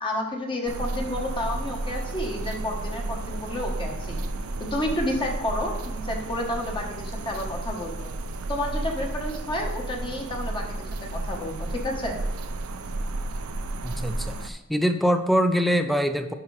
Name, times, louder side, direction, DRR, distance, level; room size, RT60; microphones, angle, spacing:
voice 1, 0.0-4.2 4.6-8.1 8.5-12.2, left 1 dB, 25° left, 0 dB, 1.1 m, -30 dB
sound 1, 0.7-14.5, right 2 dB, 70° right, 0.5 m, -32 dB
voice 2, 13.8-16.3, equal, ahead, 8 dB, 0.4 m, -24 dB
10.5 x 4.7 x 3.2 m, 1.0 s
head